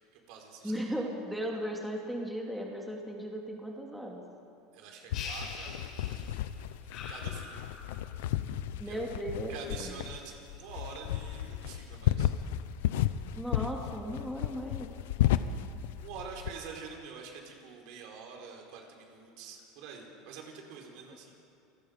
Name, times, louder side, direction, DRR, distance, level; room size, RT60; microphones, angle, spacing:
voice 1, 0.1-0.9 4.7-6.4 6.9-7.6 8.8-9.0 9.5-12.3 16.0-21.4, right 5 dB, 65° right, 2 dB, 4.3 m, -46 dB
voice 2, 0.6-4.3 8.8-9.5 9.8-9.9 13.3-14.9, equal, ahead, -1 dB, 2.5 m, -36 dB
sound 1, 5.1-16.5, left 12 dB, 85° left, 0.8 m, -33 dB
sound 2, 5.1-6.5 6.9-8.2, left 4 dB, 50° left, 4.8 m, -43 dB
28.5 x 18.5 x 5.2 m, 2.8 s
supercardioid pair, 135°, 0 cm